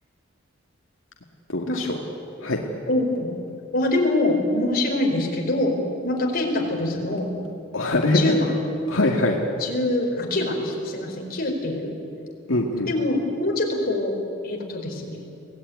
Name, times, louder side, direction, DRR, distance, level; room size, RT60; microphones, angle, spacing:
voice 1, 1.5-2.0 2.4-2.6 7.7-8.2 8.9-9.4 12.5-12.9, left 2 dB, 85° left, 0 dB, 2.3 m, -22 dB
voice 2, 2.9-3.3 3.7-5.8 6.0-7.4 8.1-8.5 9.6-12.0 12.9-14.1 14.4-15.3, left 1 dB, 50° left, 0 dB, 4.6 m, -24 dB
24.5 x 17.5 x 9.6 m, 2.6 s
head